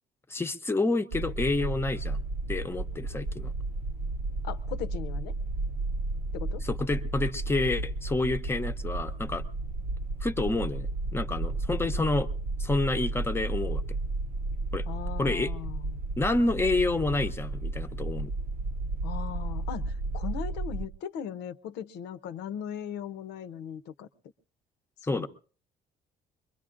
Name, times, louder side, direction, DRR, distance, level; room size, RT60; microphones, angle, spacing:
voice 1, 0.3-2.2 2.5-3.5 6.6-9.4 10.2-12.3 12.6-13.8 14.7-14.8 15.2-15.5 16.2-18.3 25.1-25.3, left 2 dB, 15° left, 0.6 m, -29 dB
sound 1, 1.1-20.9, right 2 dB, 80° right, 0.8 m, -33 dB
voice 2, 4.4-5.3 6.3-6.6 14.9-16.0 19.0-24.1 25.1-25.3, left 9 dB, 85° left, 0.7 m, -38 dB
24.0 x 21.5 x 2.5 m
cardioid pair, 110°, 17 cm